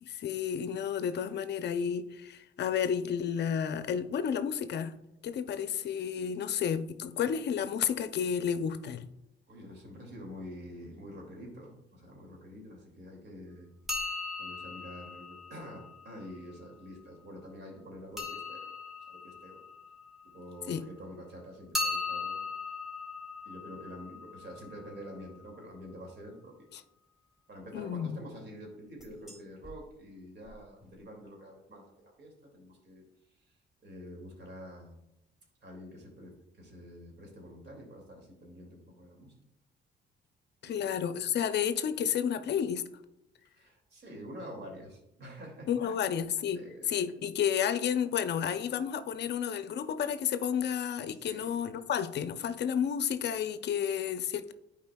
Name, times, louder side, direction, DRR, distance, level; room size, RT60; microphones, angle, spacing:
voice 1, 0.0-4.9 5.2-9.1 20.7-20.8 27.7-28.2 40.6-42.8 45.7-46.6 46.9-54.5, left 8 dB, 60° left, 11 dB, 0.5 m, -31 dB
voice 2, 9.5-13.7 14.4-18.7 19.1-19.6 20.3-22.4 23.4-26.7 27.5-33.0 33.8-35.0 35.6-39.3 40.6-40.9 43.5-46.0 46.5-47.1 51.2-51.9, equal, 55° right, 1 dB, 2.3 m, -47 dB
sound 1, 13.9-16.6 18.2-20.9 21.7-25.6 29.0-29.4 29.6-29.7 30.5-30.6 30.8-30.9, left 3 dB, ahead, 1.5 m, -39 dB
10.5 x 4.8 x 2.2 m, 0.90 s
cardioid pair, 90°, 20 cm